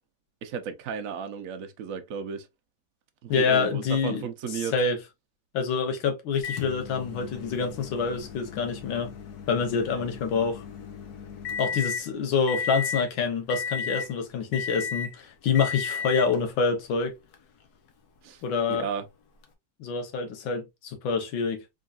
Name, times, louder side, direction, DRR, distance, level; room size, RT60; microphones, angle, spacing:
voice 1, 0.4-2.5 3.2-4.7 9.7-10.1 18.2-18.4 18.7-19.0, right 6 dB, 60° right, 0.9 m, -34 dB
voice 2, 3.3-4.3 4.6-5.0 5.5-9.1 9.5-10.6 11.6-17.1 18.4-18.9 19.8-21.6, left 5 dB, 85° left, 1.8 m, -26 dB
Microwave oven, 6.4-12.1 12.5-13.1 13.5-14.1 14.5-15.2 15.5-16.4 17.3-17.4 19.4-19.5, left 6 dB, 60° left, 1.3 m, -34 dB
3.8 x 3.6 x 2.4 m
omnidirectional pair, 2.1 m